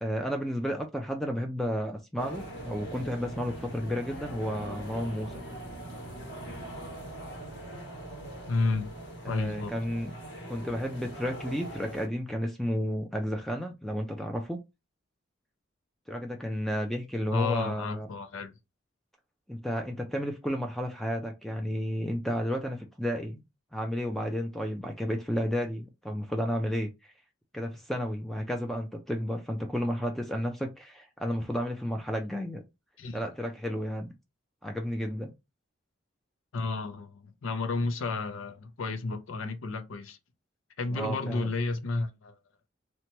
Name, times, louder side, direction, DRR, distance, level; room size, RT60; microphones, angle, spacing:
voice 1, 0.0-5.4 9.3-10.1 10.5-14.6 16.1-18.1 19.5-23.4 23.7-27.1 27.5-32.6 33.1-34.1 34.6-35.3 40.9-41.5, equal, ahead, 0.3 m, -32 dB
sound 1, 2.2-12.1, right 1 dB, 60° left, 1.5 m, -41 dB
voice 2, 8.5-8.9 9.3-9.7 17.3-18.5 33.0-33.2 36.5-40.2 40.8-42.4, left 3 dB, 85° left, 0.5 m, -31 dB
2.8 x 2.2 x 2.9 m
head